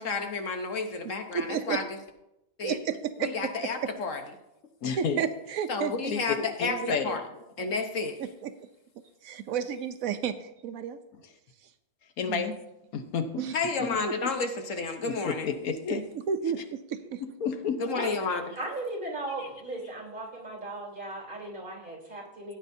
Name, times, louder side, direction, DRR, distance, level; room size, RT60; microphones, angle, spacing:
voice 1, 0.0-1.9 2.6-2.8 3.2-4.2 5.7-7.2 7.6-8.2 13.5-15.5 17.8-18.6, left 4 dB, 65° left, 6 dB, 1.3 m, -31 dB
voice 2, 1.3-1.8 2.6-3.5 5.0-6.1 6.7-7.0 8.4-8.5 9.2-11.0 12.3-12.4 13.4-13.5 14.1-14.3 16.3-17.2, right 7 dB, 80° right, 9 dB, 1.1 m, -32 dB
voice 3, 4.8-5.2 6.1-7.2 12.2-12.5 12.9-13.4 13.8-14.0 15.1-16.0 17.2-17.8, left 6 dB, 90° left, 7 dB, 1.4 m, -31 dB
voice 4, 18.6-22.6, right 2 dB, 35° right, -3 dB, 3.7 m, -37 dB
16.0 x 9.0 x 2.7 m, 0.88 s
omnidirectional pair, 1.5 m